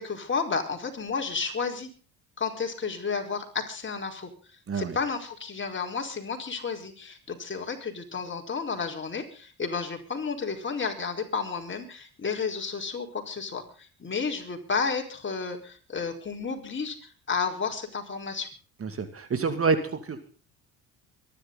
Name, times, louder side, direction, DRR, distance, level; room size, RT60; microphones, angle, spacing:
voice 1, 0.0-1.9 2.4-4.3 4.7-18.5, left 5 dB, 30° left, 3 dB, 4.7 m, -32 dB
voice 2, 18.8-20.2, right 4 dB, 35° right, 9 dB, 2.3 m, -27 dB
24.5 x 11.5 x 4.0 m, 0.39 s
hypercardioid pair, 70°, 38 cm